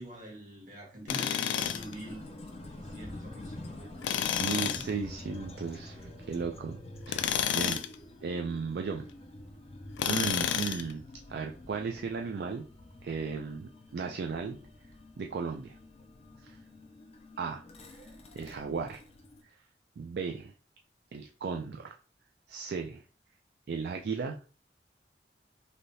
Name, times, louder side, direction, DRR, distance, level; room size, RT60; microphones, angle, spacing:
voice 1, 0.0-2.2 2.7-4.1 4.5-4.9, equal, 45° right, 1.3 m, -45 dB
Tools, 1.1-1.9 4.0-4.9 7.1-7.9 10.0-10.9, left 9 dB, 90° left, 0.3 m, -30 dB
sound 1, 1.6-19.4, left 1 dB, 35° left, 0.5 m, -47 dB
voice 2, 4.4-7.8 8.2-9.1 10.1-11.0 11.3-12.6 13.0-14.6 15.2-15.8 16.4-16.6 17.4-17.6 18.4-19.0 20.0-20.5 21.1-21.9 22.5-23.0 23.7-24.4, right 5 dB, 65° right, 0.3 m, -35 dB
3.4 x 2.7 x 2.7 m
head